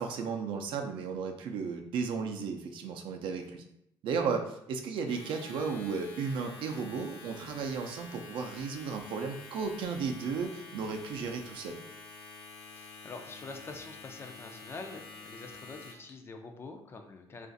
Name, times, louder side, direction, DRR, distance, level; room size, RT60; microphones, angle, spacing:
voice 1, 0.0-3.6 4.0-11.8, right 5 dB, 65° right, 4 dB, 0.5 m, -34 dB
Domestic sounds home sounds, 5.0-16.1, left 4 dB, 85° left, 0.7 m, -49 dB
voice 2, 12.8-17.5, left 3 dB, 25° left, 5 dB, 0.4 m, -45 dB
2.5 x 2.4 x 3.9 m, 0.76 s
cardioid pair, 145°, 9 cm